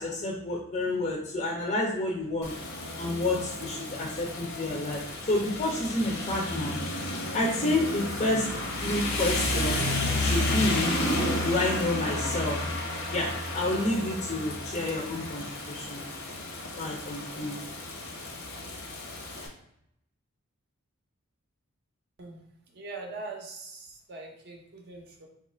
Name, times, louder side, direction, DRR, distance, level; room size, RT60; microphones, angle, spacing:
voice 1, 0.0-2.5 3.0-5.0 5.3-6.8 7.3-8.5 8.8-9.8 10.2-11.0 11.4-12.6 13.1-16.0 16.8-17.6, left 2 dB, 30° left, -2 dB, 0.4 m, -29 dB
Rain, 2.4-19.5, left 1 dB, 85° left, 0.8 m, -32 dB
voice 2, 22.7-25.3, right 3 dB, 45° right, 1 dB, 0.5 m, -42 dB
2.9 x 2.3 x 4.2 m, 0.77 s
head